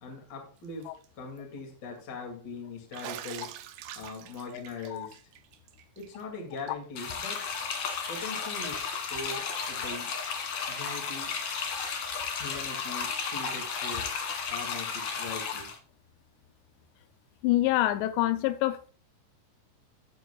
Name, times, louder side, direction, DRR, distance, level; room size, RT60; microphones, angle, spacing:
voice 1, 0.0-3.6 3.9-5.2 6.0-7.5 8.1-10.1 10.7-11.4 12.4-14.1 14.5-15.7, left 3 dB, 30° left, 2.5 m, -41 dB
Bathtub (filling or washing), 0.6-1.1 1.4-1.5 2.9-6.2 6.6-6.7 7.0-7.1 8.5-8.6 10.3-10.4, right 12 dB, 85° right, 1.8 m, -45 dB
sound 1, 7.0-15.8, left 6 dB, 55° left, 3.2 m, -34 dB
voice 2, 17.4-18.9, left 15 dB, 85° left, 2.9 m, -26 dB
14.5 x 9.1 x 2.4 m
omnidirectional pair, 4.8 m